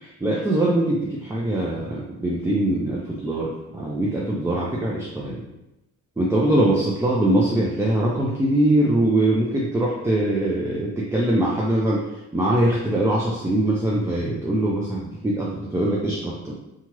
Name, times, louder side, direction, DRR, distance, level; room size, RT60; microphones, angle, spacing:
voice 1, 0.0-5.4 6.2-12.1 12.3-16.5, right 1 dB, 10° right, -4 dB, 0.5 m, -22 dB
2.8 x 2.4 x 3.0 m, 0.94 s
cardioid pair, 90°, 30 cm